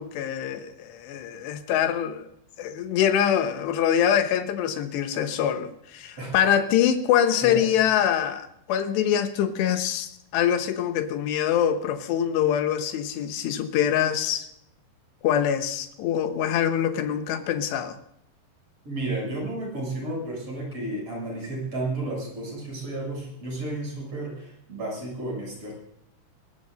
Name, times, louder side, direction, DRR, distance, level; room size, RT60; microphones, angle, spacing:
voice 1, 0.0-2.3 2.6-14.5 15.2-18.0, left 9 dB, 80° left, 7 dB, 3.2 m, -24 dB
voice 2, 18.8-25.7, right 2 dB, 35° right, -2 dB, 8.2 m, -32 dB
23.0 x 19.5 x 2.6 m, 0.73 s
omnidirectional pair, 5.0 m